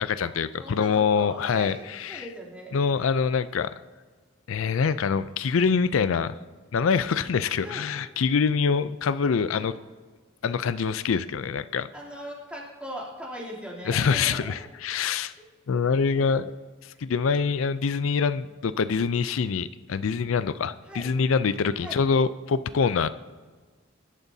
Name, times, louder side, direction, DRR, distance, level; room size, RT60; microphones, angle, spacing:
voice 1, 0.0-2.3 2.7-3.7 4.5-6.4 6.7-9.7 10.4-11.9 13.9-15.3 15.7-16.5 16.8-23.1, left 5 dB, 90° left, 14 dB, 0.4 m, -25 dB
voice 2, 0.6-2.7 7.6-7.8 9.5-9.6 11.9-14.5 15.0-15.5 16.1-16.3 20.8-21.1 21.8-22.0, equal, 5° right, -5 dB, 2.9 m, -40 dB
22.0 x 12.0 x 2.7 m, 1.4 s
head